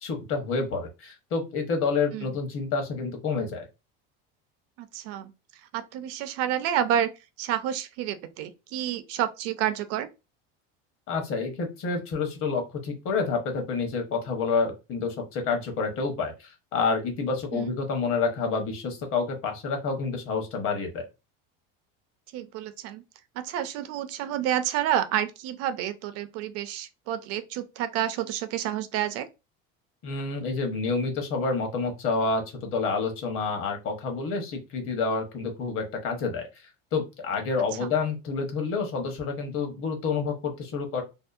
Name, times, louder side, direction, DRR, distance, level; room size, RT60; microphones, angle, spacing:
voice 1, 0.0-3.6 11.1-21.1 30.0-36.6 36.9-41.0, left 4 dB, 45° left, 0.9 m, -28 dB
voice 2, 4.8-5.3 5.7-7.1 7.4-10.1 17.5-17.7 22.3-23.0 23.4-29.3 37.8-37.9, right 10 dB, 55° right, 0.4 m, -29 dB
2.7 x 2.0 x 2.4 m
supercardioid pair, 125°, 30 cm